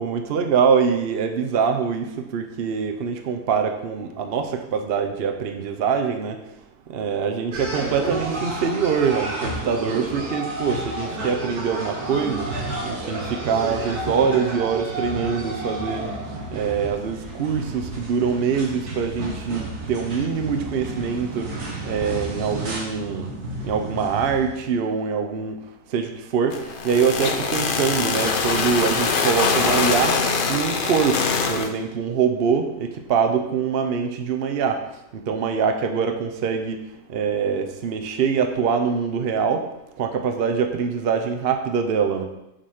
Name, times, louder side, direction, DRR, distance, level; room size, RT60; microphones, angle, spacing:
voice 1, 0.0-6.4 6.9-12.5 12.8-16.0 16.5-21.5 21.8-23.3 23.6-25.6 25.9-30.2 30.5-34.8 35.1-36.8 37.1-39.7 40.0-42.3, right 6 dB, 50° right, 6 dB, 0.8 m, -24 dB
sound 1, 7.5-24.7, right 2 dB, 80° right, 2.0 m, -31 dB
sound 2, 26.5-31.7, left 4 dB, 50° left, 0.6 m, -23 dB
7.7 x 4.1 x 6.4 m, 0.89 s
omnidirectional pair, 1.6 m